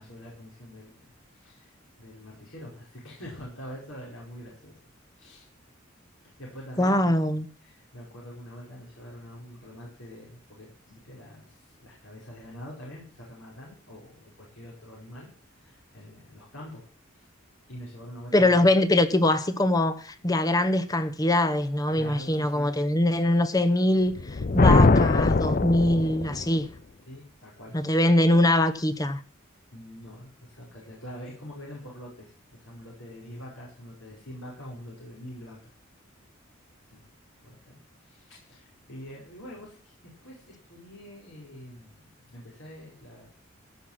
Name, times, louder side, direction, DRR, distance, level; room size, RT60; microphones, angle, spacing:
voice 1, 0.0-1.7 2.0-4.7 5.2-5.5 6.4-7.1 7.6-15.3 15.6-16.8 17.1-17.3 17.7-18.7 21.9-22.7 26.5-26.7 27.1-27.8 29.7-35.7 36.9-37.0 37.4-39.9 40.2-43.3, equal, 75° left, 5.2 m, -45 dB
voice 2, 6.8-7.5 18.3-24.2 24.5-26.7 27.7-29.2, left 1 dB, 20° left, 0.8 m, -22 dB
Thunder, 24.1-26.5, left 3 dB, 40° left, 0.5 m, -21 dB
15.0 x 6.0 x 7.5 m
head